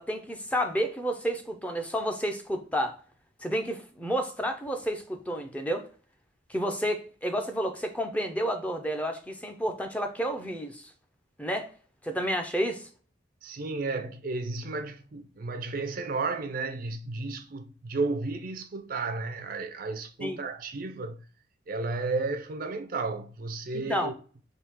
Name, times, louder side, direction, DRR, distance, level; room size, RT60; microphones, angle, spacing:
voice 1, 0.0-3.0 3.4-5.8 6.5-10.9 11.4-11.7 12.0-12.9 20.2-20.4 23.7-24.1, equal, 5° left, 0.5 m, -30 dB
voice 2, 13.4-21.2 21.7-24.1, right 3 dB, 50° right, 0.4 m, -33 dB
3.5 x 2.8 x 4.3 m
head